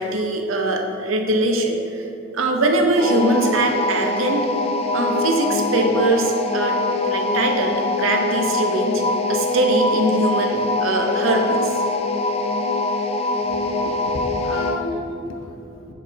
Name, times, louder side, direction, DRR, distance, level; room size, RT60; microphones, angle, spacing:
voice 1, 0.0-1.8 2.3-4.4 4.9-6.8 7.1-9.0 9.3-11.7, right 2 dB, 75° right, 3 dB, 0.8 m, -21 dB
sound 1, 3.0-14.8, left 2 dB, 30° left, 0.4 m, -23 dB
voice 2, 13.5-15.9, left 1 dB, 80° left, 3 dB, 0.8 m, -32 dB
7.5 x 4.6 x 4.0 m, 2.7 s
head